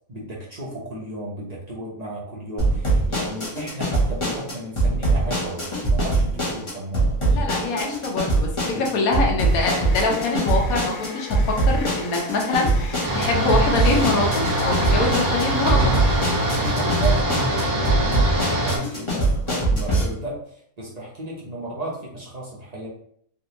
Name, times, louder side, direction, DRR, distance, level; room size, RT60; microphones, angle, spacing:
voice 1, 0.1-5.6 5.9-7.1 8.6-9.0 16.6-22.9, right 1 dB, 35° right, -5 dB, 0.7 m, -34 dB
sound 1, 2.6-20.0, right 2 dB, 25° left, 0.9 m, -23 dB
voice 2, 7.3-8.5 8.8-15.9, left 3 dB, 90° left, 1 dB, 1.2 m, -24 dB
sound 2, 8.8-17.3, left 4 dB, 65° left, 0.9 m, -38 dB
sound 3, 13.0-18.8, right 1 dB, 65° right, 1.1 m, -23 dB
3.4 x 2.5 x 2.8 m, 0.65 s
omnidirectional pair, 1.5 m